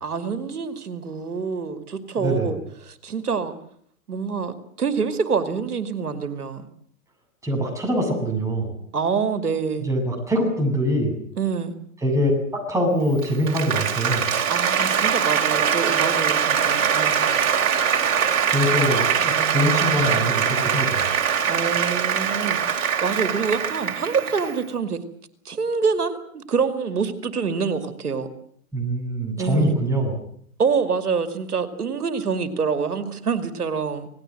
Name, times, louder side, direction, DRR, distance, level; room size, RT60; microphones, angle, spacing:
voice 1, 0.0-3.5 4.1-6.7 8.9-9.9 11.4-11.8 14.5-17.3 19.2-19.6 21.4-25.0 25.4-28.3 29.4-29.7 30.6-34.1, right 5 dB, 90° right, 9 dB, 2.5 m, -26 dB
voice 2, 2.2-2.5 7.4-8.7 9.8-11.2 12.0-14.2 18.5-21.1 28.7-30.1, equal, 5° right, 0 dB, 7.9 m, -23 dB
Applause, 13.1-24.6, right 7 dB, 60° right, 4.1 m, -22 dB
27.0 x 19.0 x 7.8 m, 0.65 s
hypercardioid pair, 130°, 44 cm